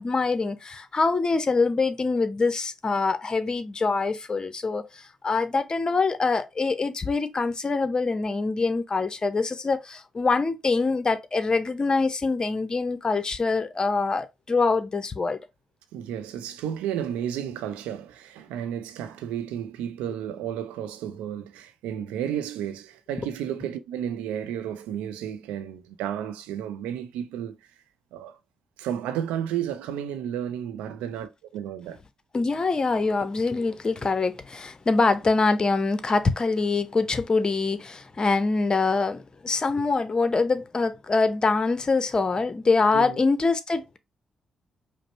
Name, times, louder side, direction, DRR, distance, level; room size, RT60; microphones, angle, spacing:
voice 1, 0.0-15.4 32.3-44.0, left 3 dB, 35° left, 0.8 m, -24 dB
voice 2, 15.9-27.6 28.1-28.4 28.8-32.0 42.9-43.2, right 10 dB, 75° right, 0.5 m, -32 dB
5.1 x 2.1 x 4.3 m
hypercardioid pair, 40°, 2 cm